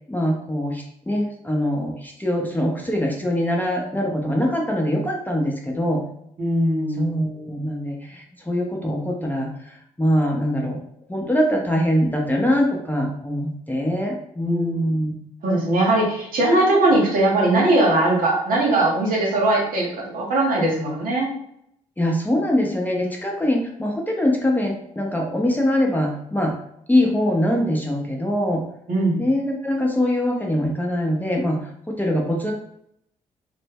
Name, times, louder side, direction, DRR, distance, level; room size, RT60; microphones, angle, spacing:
voice 1, 0.1-6.0 7.0-10.8 11.1-15.1 22.0-26.5 26.9-28.6 29.2-31.6 32.0-32.5, left 1 dB, 10° left, 0 dB, 0.6 m, -23 dB
voice 2, 6.4-7.1 14.4-14.9 15.4-21.3 28.9-29.2, right 2 dB, 60° right, -2 dB, 0.9 m, -20 dB
2.0 x 2.0 x 3.4 m, 0.73 s
hypercardioid pair, 45°, 16 cm